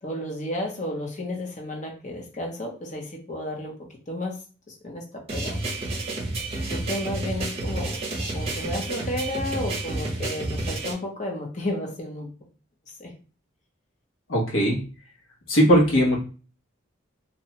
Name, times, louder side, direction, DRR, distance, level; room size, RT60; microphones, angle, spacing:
voice 1, 0.0-3.8 4.1-4.4 4.7-5.6 6.6-12.3 12.9-13.1, left 1 dB, 35° left, 1 dB, 0.7 m, -32 dB
sound 1, 5.3-10.9, right 2 dB, 30° right, 0.7 m, -30 dB
voice 2, 14.3-14.8 15.5-16.2, equal, 85° left, -2 dB, 1.1 m, -19 dB
2.7 x 2.2 x 2.9 m, 0.37 s
head